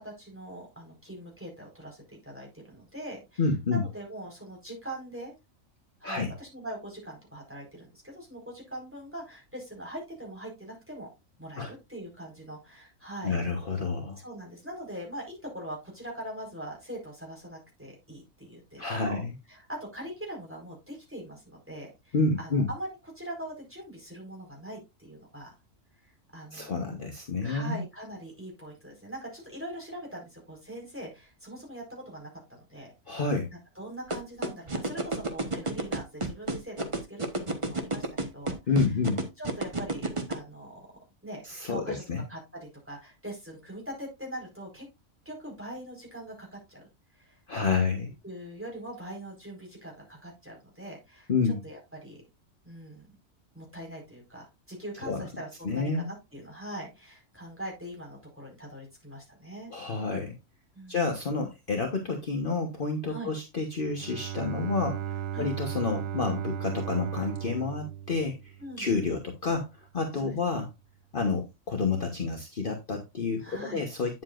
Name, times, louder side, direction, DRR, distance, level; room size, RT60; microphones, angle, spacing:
voice 1, 0.0-3.4 3.7-5.3 6.0-11.1 11.4-13.4 14.2-19.2 19.5-22.9 23.1-25.5 26.3-26.7 27.4-33.2 33.7-38.1 38.3-38.8 39.4-40.9 41.2-42.0 42.3-44.9 45.2-46.9 47.1-47.8 48.2-52.2 52.6-53.1 53.5-59.7 60.7-61.0 63.1-63.3 64.4-64.5 65.3-65.5 68.6-68.9 70.1-70.3 73.4-73.9, right 1 dB, 10° right, -2 dB, 4.8 m, -42 dB
voice 2, 3.4-3.8 6.0-6.3 11.6-11.7 13.2-14.2 18.8-19.3 22.1-22.7 26.5-27.8 33.1-33.5 38.7-39.2 41.4-42.2 47.5-48.1 51.3-51.6 55.0-55.2 55.6-56.1 59.7-60.3 60.9-70.7 71.1-74.2, left 4 dB, 45° left, 3 dB, 1.3 m, -29 dB
sound 1, 34.1-40.3, right 2 dB, 25° right, 1.2 m, -29 dB
Bowed string instrument, 63.9-68.9, right 11 dB, 65° right, 0.8 m, -36 dB
9.5 x 7.6 x 2.5 m, 0.24 s
omnidirectional pair, 1.4 m